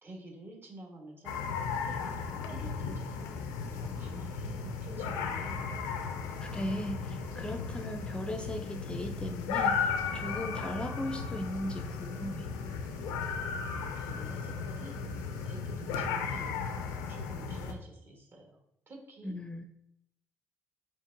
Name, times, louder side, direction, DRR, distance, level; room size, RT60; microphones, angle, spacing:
voice 1, 0.0-1.4 1.8-3.3 3.7-5.8 13.9-15.0 15.4-18.6 18.9-19.3, right 2 dB, 40° right, 0 dB, 1.2 m, -50 dB
sound 1, 1.3-17.7, left 5 dB, 85° left, 0.4 m, -35 dB
voice 2, 6.4-12.5 19.2-19.6, left 1 dB, 15° left, 5 dB, 0.4 m, -37 dB
4.3 x 2.9 x 2.5 m, 0.77 s
supercardioid pair, 60°, 6 cm